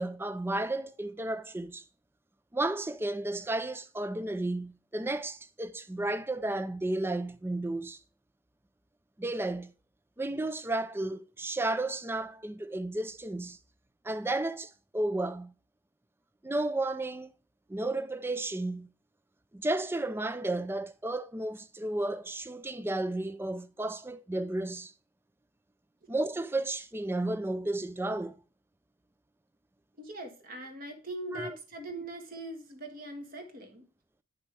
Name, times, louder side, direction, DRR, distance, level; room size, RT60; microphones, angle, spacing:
voice 1, 0.0-1.8 2.5-8.0 9.2-9.7 10.2-13.6 14.0-15.5 16.4-17.3 17.7-18.9 19.5-24.9 26.1-28.4 31.3-31.6, right 2 dB, 10° right, 0.4 m, -33 dB
voice 2, 30.0-33.8, right 1 dB, 45° right, 1.6 m, -41 dB
9.4 x 5.8 x 3.3 m
head